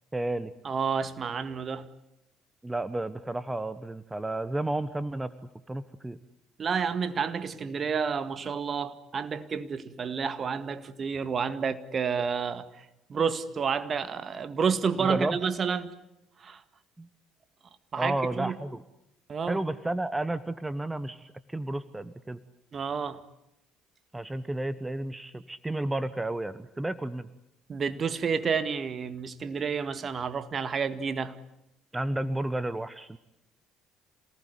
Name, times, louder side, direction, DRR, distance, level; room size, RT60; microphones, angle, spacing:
voice 1, 0.1-0.5 2.6-5.3 5.7-6.2 15.0-15.4 17.0-17.1 18.0-18.8 19.5-22.4 24.1-27.3 31.9-33.2, right 2 dB, 15° right, 14 dB, 1.2 m, -32 dB
voice 2, 0.6-1.9 6.6-15.9 16.4-16.6 17.9-18.6 19.3-19.6 22.7-23.2 27.7-31.4, right 6 dB, 40° right, 11 dB, 1.9 m, -30 dB
27.5 x 19.0 x 9.7 m, 0.86 s
hypercardioid pair, 60°, 0 cm